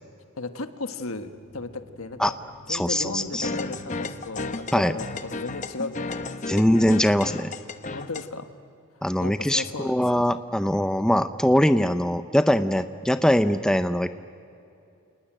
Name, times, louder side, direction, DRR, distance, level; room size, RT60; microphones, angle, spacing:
voice 1, 0.4-2.4 2.7-6.7 7.9-8.5 9.2-10.2, left 3 dB, 80° left, 8 dB, 1.5 m, -35 dB
sound 1, 1.1-5.3, right 1 dB, 35° right, 2.2 m, -49 dB
voice 2, 2.7-3.5 4.7-4.9 6.5-7.5 9.0-14.1, equal, 5° left, 10 dB, 0.5 m, -22 dB
sound 2, 3.3-8.2, left 3 dB, 35° left, 0.8 m, -33 dB
29.0 x 20.0 x 9.0 m, 2.6 s
head